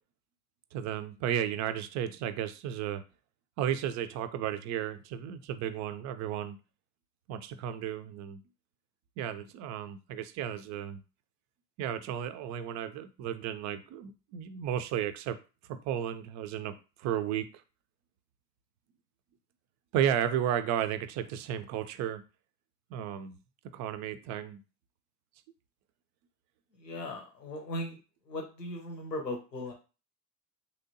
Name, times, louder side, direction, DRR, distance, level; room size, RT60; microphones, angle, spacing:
voice 1, 0.7-3.0 3.6-6.6 7.3-8.4 9.2-11.0 11.8-15.4 15.7-17.5 19.9-22.2 22.9-23.4 23.7-24.6, right 10 dB, 40° right, 10 dB, 0.4 m, -33 dB
voice 2, 26.8-28.0 28.3-29.7, left 1 dB, 90° left, 3 dB, 0.8 m, -38 dB
3.2 x 2.8 x 2.6 m, 0.32 s
figure-of-eight pair, 65°, 47 cm